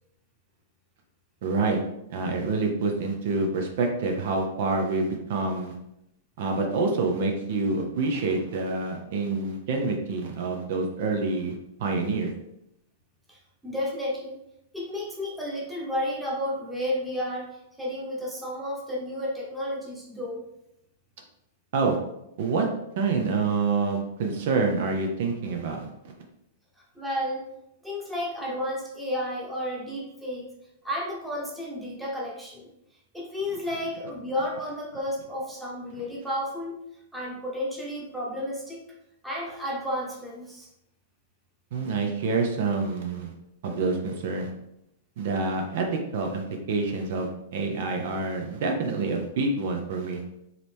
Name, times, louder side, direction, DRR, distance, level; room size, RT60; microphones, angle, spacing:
voice 1, 1.4-1.8 2.1-5.7 6.4-12.3 21.7-22.0 22.4-22.7 23.0-25.9 41.7-43.3 43.6-44.5 45.2-45.9 46.1-50.2, right 3 dB, 60° right, 3 dB, 0.8 m, -27 dB
voice 2, 13.3-14.4 14.7-17.5 17.8-20.4 26.9-27.4 27.8-30.5 30.8-32.7 33.1-36.8 37.1-38.8 39.2-40.7 47.9-48.0, left 1 dB, 5° right, -4 dB, 1.1 m, -32 dB
4.8 x 3.1 x 3.5 m, 0.82 s
supercardioid pair, 155°, 0 cm